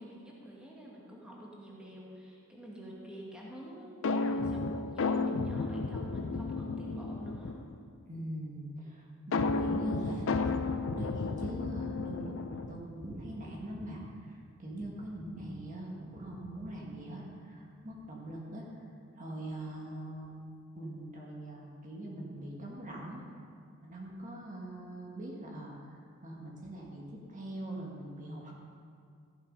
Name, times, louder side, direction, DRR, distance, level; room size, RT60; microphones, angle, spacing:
voice 1, 0.0-7.6, equal, 5° right, -5 dB, 1.8 m, -48 dB
sound 1, 4.0-7.8 9.3-12.9, left 3 dB, 65° left, 0.5 m, -32 dB
voice 2, 8.1-18.6 19.1-20.4 20.7-23.2 23.8-25.8 26.2-28.6, right 1 dB, 35° right, -2 dB, 1.7 m, -42 dB
14.5 x 7.3 x 5.4 m, 2.2 s
head